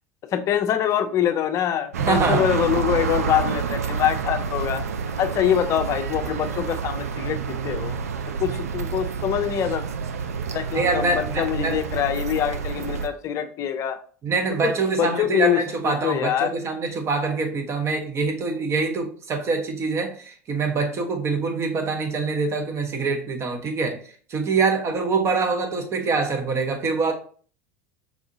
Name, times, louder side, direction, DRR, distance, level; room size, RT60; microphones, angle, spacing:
voice 1, 0.3-4.8 5.2-7.9 8.4-9.8 10.5-14.0 14.6-14.7 15.0-16.5, left 9 dB, 40° left, 0.5 m, -24 dB
sound 1, 1.9-13.1, right 6 dB, 80° right, 0.4 m, -28 dB
voice 2, 2.0-2.4 10.7-11.8 14.2-24.0 24.3-27.1, right 4 dB, 35° right, 0.9 m, -24 dB
4.7 x 2.7 x 2.6 m
figure-of-eight pair, 80°, 8 cm